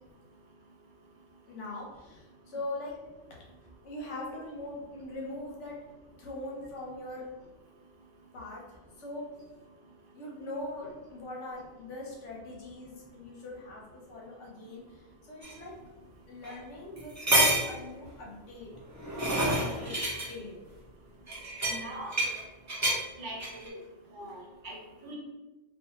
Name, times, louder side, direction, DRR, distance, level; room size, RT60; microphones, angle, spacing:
voice 1, 1.5-2.9 3.8-5.8 6.2-7.3 8.3-9.3 10.1-14.8 15.3-15.7 16.3-17.2 17.6-18.7 19.5-20.0 20.3-20.6, left 2 dB, 70° left, -3 dB, 1.1 m, -41 dB
sound 1, 15.4-15.5 16.4-16.5 17.0-17.8 18.7-20.3 21.3-22.4 22.7-23.0 23.4-23.7, right 1 dB, 25° right, 0.3 m, -28 dB
voice 2, 21.7-22.1 23.2-23.7 24.1-25.2, right 1 dB, 45° right, -3 dB, 0.8 m, -42 dB
2.5 x 2.2 x 2.9 m, 1.1 s
omnidirectional pair, 1.3 m